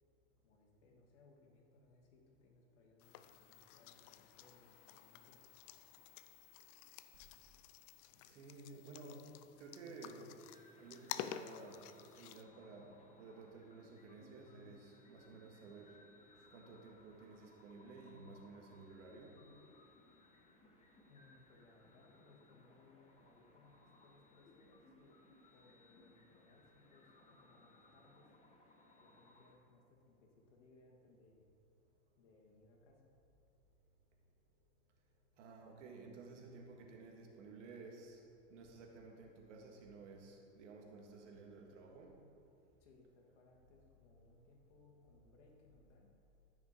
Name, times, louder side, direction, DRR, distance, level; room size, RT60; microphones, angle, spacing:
voice 1, 0.4-5.4 21.1-25.1 25.5-28.3 29.0-31.5 32.2-33.1 42.8-46.1, left 3 dB, 75° left, -1 dB, 2.2 m, -67 dB
sound 1, 3.0-12.4, left 11 dB, 40° left, 0.4 m, -51 dB
voice 2, 8.2-9.3 9.6-10.3 10.8-16.0 16.5-19.4 35.4-38.2 38.5-42.1, right 3 dB, 85° right, 1 dB, 2.0 m, -54 dB
sound 2, 10.3-29.5, left 2 dB, 20° left, 1.2 m, -66 dB
14.0 x 6.1 x 4.5 m, 2.6 s
supercardioid pair, 130°, 36 cm